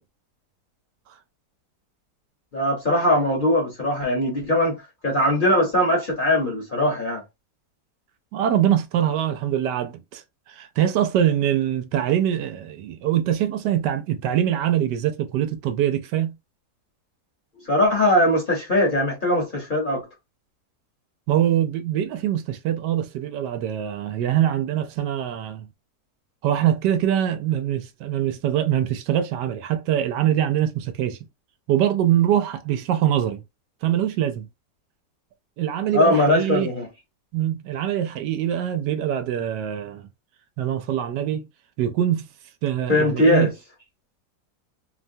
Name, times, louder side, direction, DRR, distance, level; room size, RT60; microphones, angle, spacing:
voice 1, 2.5-7.2 17.7-20.0 35.9-36.9 42.9-43.5, left 1 dB, 35° left, 0.9 m, -20 dB
voice 2, 8.3-10.2 10.6-16.3 21.3-25.7 26.4-31.2 31.7-33.4 33.8-34.5 35.6-36.7 37.3-40.1 40.6-41.5 41.8-42.2 42.6-43.5, right 11 dB, 80° right, 1.2 m, -23 dB
3.1 x 2.2 x 2.6 m
omnidirectional pair, 1.8 m